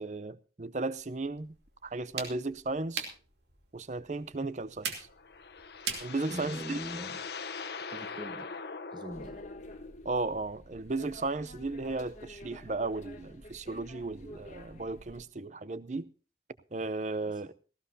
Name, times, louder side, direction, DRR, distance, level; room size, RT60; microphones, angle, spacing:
voice 1, 0.0-1.5 1.8-3.1 3.7-4.9 6.0-6.8 10.0-16.1 16.7-17.5, right 3 dB, 40° right, 0.6 m, -35 dB
sound 1, 1.0-6.9, right 6 dB, 75° right, 2.8 m, -43 dB
sound 2, 5.0-10.2, left 5 dB, 65° left, 1.1 m, -42 dB
voice 2, 6.3-7.2 7.9-8.6 8.9-9.4 17.3-17.4, right 1 dB, 25° right, 1.0 m, -42 dB
sound 3, 9.1-15.2, equal, 40° left, 1.5 m, -50 dB
18.0 x 15.5 x 2.7 m
head